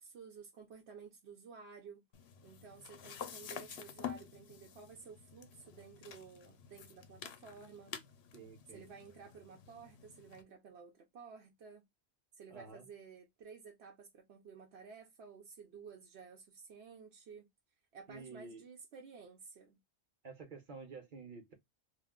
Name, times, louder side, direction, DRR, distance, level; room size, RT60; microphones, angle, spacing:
voice 1, 0.0-2.0 2.4-8.0 8.7-11.8 12.3-17.5 17.9-19.8, right 5 dB, 70° right, 0.9 m, -53 dB
sound 1, 2.1-10.4, left 9 dB, 70° left, 0.8 m, -49 dB
voice 2, 8.3-8.8 12.5-12.8 18.1-18.6 20.2-21.5, right 4 dB, 50° right, 1.0 m, -50 dB
2.4 x 2.2 x 3.4 m
omnidirectional pair, 1.2 m